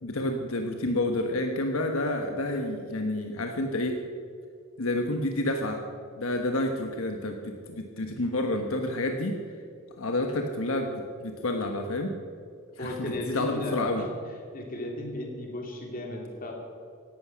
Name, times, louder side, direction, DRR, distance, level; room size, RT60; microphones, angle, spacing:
voice 1, 0.0-4.0 4.8-5.8 6.2-9.4 10.0-12.1 12.8-14.0, left 1 dB, 80° left, 4 dB, 1.2 m, -29 dB
voice 2, 12.8-14.1 14.5-16.5, left 1 dB, 40° left, 0 dB, 3.0 m, -35 dB
16.5 x 11.5 x 6.2 m, 2.3 s
head